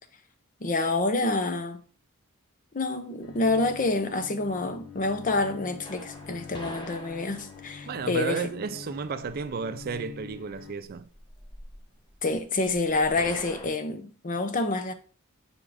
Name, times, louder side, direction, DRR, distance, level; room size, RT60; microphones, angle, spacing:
voice 1, 0.6-1.8 2.7-8.4 12.2-14.9, left 2 dB, 40° left, 0.7 m, -27 dB
Bowed string instrument, 3.2-10.7, left 5 dB, 75° left, 0.9 m, -45 dB
sound 1, 5.8-13.7, equal, 20° left, 1.1 m, -46 dB
voice 2, 7.9-11.1, right 5 dB, 45° right, 0.4 m, -33 dB
7.2 x 3.7 x 4.8 m
head